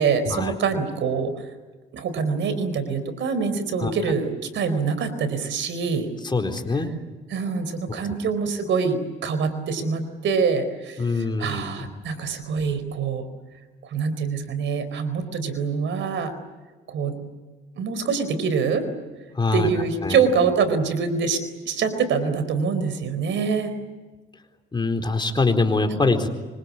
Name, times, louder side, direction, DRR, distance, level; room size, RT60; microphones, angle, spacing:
voice 1, 0.0-1.5 1.9-6.1 7.3-13.2 13.8-16.3 16.9-17.2 17.8-18.9 19.5-21.4 21.6-23.7, right 5 dB, 70° right, 11 dB, 4.4 m, -25 dB
voice 2, 6.2-6.9 11.0-11.9 19.4-19.7 20.0-20.2 24.7-26.3, left 3 dB, 25° left, 5 dB, 4.2 m, -23 dB
25.5 x 25.0 x 8.5 m, 1.3 s
cardioid pair, 90°, 20 cm